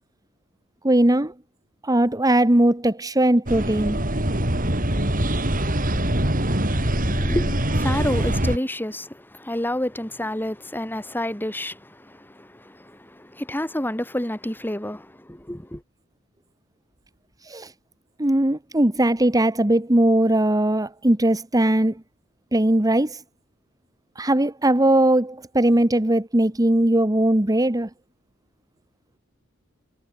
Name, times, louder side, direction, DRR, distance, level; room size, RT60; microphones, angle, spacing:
voice 1, 0.8-1.3 1.8-4.0 17.4-17.7 18.2-21.9 22.5-23.2 24.2-27.9, right 1 dB, 20° right, 1.3 m, -19 dB
sound 1, 3.5-8.6, right 1 dB, 45° right, 6.5 m, -23 dB
voice 2, 6.3-15.8, left 1 dB, 10° left, 2.4 m, -29 dB
head